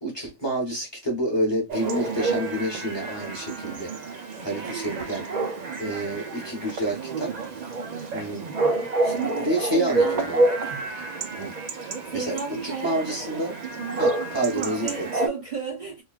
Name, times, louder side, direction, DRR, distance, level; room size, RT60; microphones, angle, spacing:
voice 1, 0.0-3.9 4.4-5.2 5.8-7.3 8.1-8.4 8.8-8.9 9.4-10.4 11.4-11.5 12.1-12.4 12.6-13.5 14.0-15.1, right 1 dB, 25° left, 0.9 m, -28 dB
Chatter / Bark / Livestock farm animals working animals, 1.7-15.3, right 3 dB, 90° right, 0.3 m, -28 dB
voice 2, 4.4-5.0 7.8-8.3 9.0-10.3 10.6-10.8 12.1-13.3 13.8-14.0 14.5-16.0, right 6 dB, 45° right, 0.8 m, -34 dB
3.1 x 2.3 x 2.2 m
omnidirectional pair, 1.3 m